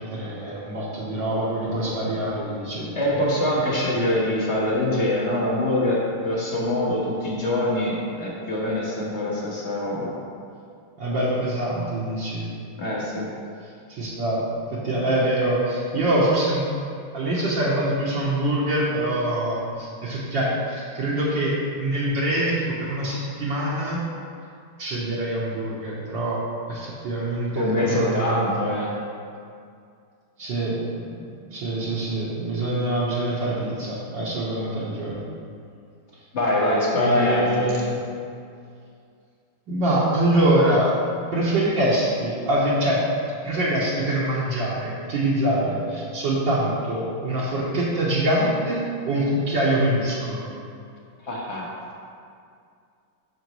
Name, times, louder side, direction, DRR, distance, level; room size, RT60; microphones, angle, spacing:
voice 1, 0.0-2.9 11.0-12.5 13.9-16.6 17.1-24.0 24.8-26.4 26.7-28.7 30.4-30.8 31.5-35.2 36.9-38.0 39.7-40.9 41.3-43.0 43.4-50.5, right 1 dB, 60° right, -7 dB, 1.7 m, -24 dB
voice 2, 2.9-10.1 12.8-13.3 27.6-28.9 36.3-37.8 51.2-51.7, left 1 dB, 35° left, -4 dB, 1.4 m, -24 dB
9.2 x 6.5 x 3.1 m, 2.3 s
omnidirectional pair, 2.3 m